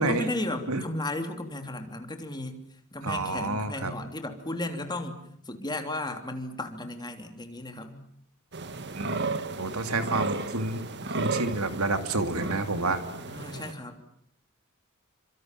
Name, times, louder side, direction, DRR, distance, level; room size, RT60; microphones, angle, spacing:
voice 1, 0.0-2.6 2.9-5.2 5.5-8.0 13.2-14.0, left 1 dB, 20° left, 6 dB, 3.2 m, -34 dB
voice 2, 3.0-3.9 9.0-9.3 9.6-10.8 11.1-13.0, right 2 dB, 80° right, 8 dB, 2.9 m, -29 dB
sound 1, 8.5-13.7, right 3 dB, 55° right, 1.7 m, -34 dB
29.5 x 25.5 x 7.6 m, 0.67 s
head